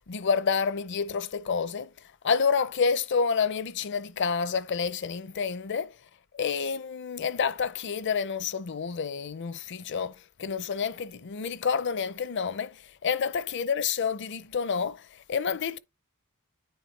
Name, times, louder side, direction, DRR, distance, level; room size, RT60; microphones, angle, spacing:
voice 1, 0.1-1.9 2.2-5.9 6.3-15.8, left 6 dB, 55° left, 0.5 m, -29 dB
9.5 x 4.4 x 3.2 m
head